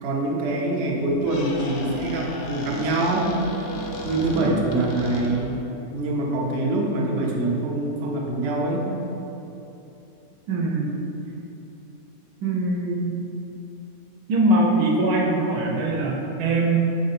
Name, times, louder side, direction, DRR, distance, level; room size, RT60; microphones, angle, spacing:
voice 1, 0.0-3.3 4.0-5.5 5.9-8.9, right 2 dB, 60° right, -2 dB, 0.8 m, -24 dB
Squeak, 1.0-5.7, left 1 dB, 65° left, 0.7 m, -35 dB
voice 2, 4.2-4.5 10.5-11.0 12.4-13.1 14.3-16.8, right 2 dB, 85° right, -1 dB, 1.2 m, -22 dB
3.8 x 3.3 x 4.1 m, 2.9 s
omnidirectional pair, 1.6 m